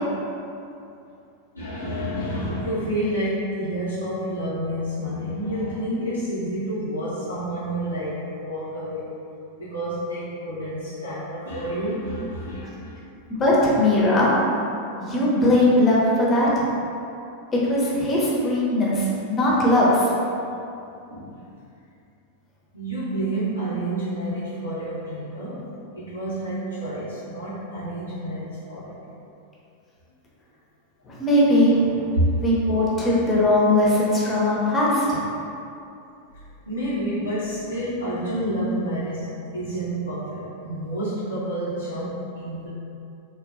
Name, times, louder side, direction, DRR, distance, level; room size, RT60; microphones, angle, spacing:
voice 1, 1.5-9.1 9.6-13.0 21.1-21.4 22.7-25.6 26.0-29.0 32.1-32.5 36.3-39.3 39.5-42.7, right 1 dB, 85° left, -13 dB, 0.6 m, -29 dB
voice 2, 13.4-14.3 15.0-16.7 17.7-20.1 31.1-32.1 32.4-35.2, left 1 dB, 20° left, -5 dB, 0.7 m, -19 dB
3.6 x 2.2 x 2.5 m, 2.7 s
figure-of-eight pair, 90°, 0 cm